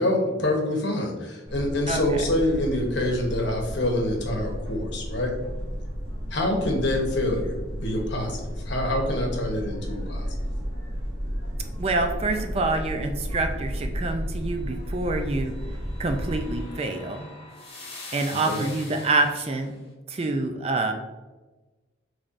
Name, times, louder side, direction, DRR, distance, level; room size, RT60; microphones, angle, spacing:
voice 1, 0.0-5.3 6.3-8.4 8.7-10.3 18.3-18.6, left 1 dB, 60° left, 1 dB, 1.0 m, -26 dB
sound 1, 1.5-16.6, equal, 55° right, 1.4 m, -33 dB
voice 2, 1.9-2.2 11.8-15.5 16.0-17.3 18.1-19.7 20.1-20.9, right 2 dB, 30° right, 5 dB, 0.3 m, -26 dB
sound 2, 15.0-19.7, left 2 dB, 30° left, 1.2 m, -43 dB
5.5 x 3.2 x 2.5 m, 1.2 s
head